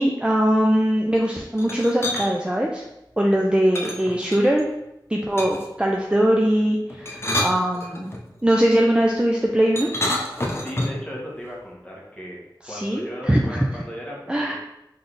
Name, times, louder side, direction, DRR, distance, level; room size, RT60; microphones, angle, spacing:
voice 1, 0.0-2.8 3.2-4.7 5.1-8.1 8.4-9.9 12.6-13.7 14.3-14.6, equal, 10° right, -1 dB, 0.5 m, -21 dB
sound 1, 1.6-2.3 3.7-4.7 5.4-5.8 6.9-8.2 9.8-11.1, left 1 dB, 30° left, 0.8 m, -28 dB
voice 2, 10.6-12.4 12.7-14.6, equal, 15° left, -4 dB, 1.4 m, -36 dB
3.9 x 3.3 x 3.9 m, 0.89 s
wide cardioid pair, 45°, 8 cm